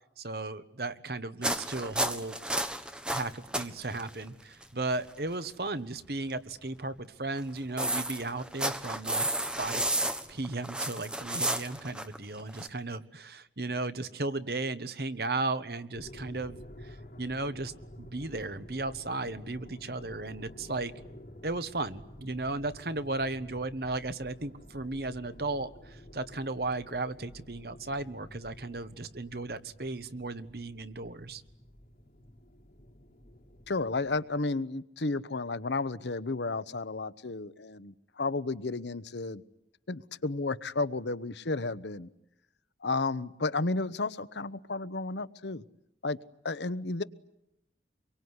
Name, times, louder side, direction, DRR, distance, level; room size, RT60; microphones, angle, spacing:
voice 1, 0.2-2.4 3.1-9.3 9.6-9.8 10.3-20.9 21.4-31.4, right 2 dB, 60° right, 11 dB, 1.3 m, -35 dB
sound 1, 1.4-3.7 4.0-4.1 4.6-4.7 7.4-12.7, right 1 dB, 5° right, 1.3 m, -32 dB
sound 2, 15.9-34.2, equal, 50° left, 5.3 m, -51 dB
voice 2, 33.7-39.4 39.9-42.1 42.8-45.6 46.0-46.2 46.4-47.0, left 3 dB, 80° left, 15 dB, 1.0 m, -32 dB
25.5 x 23.5 x 9.7 m, 0.82 s
head